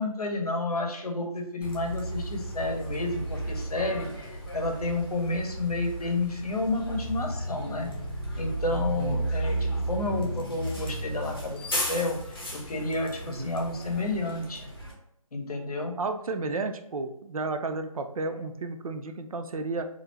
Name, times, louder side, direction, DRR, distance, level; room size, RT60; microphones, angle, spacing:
voice 1, 0.0-7.9 8.4-12.2 12.5-14.7 15.3-15.9, left 2 dB, 85° left, 2 dB, 0.8 m, -30 dB
Bus, 1.6-14.9, right 1 dB, 40° left, 0.6 m, -34 dB
voice 2, 9.0-9.3 13.3-13.6 16.0-19.9, right 3 dB, 70° right, 7 dB, 0.4 m, -32 dB
2.4 x 2.0 x 3.1 m, 0.80 s
figure-of-eight pair, 180°, 19 cm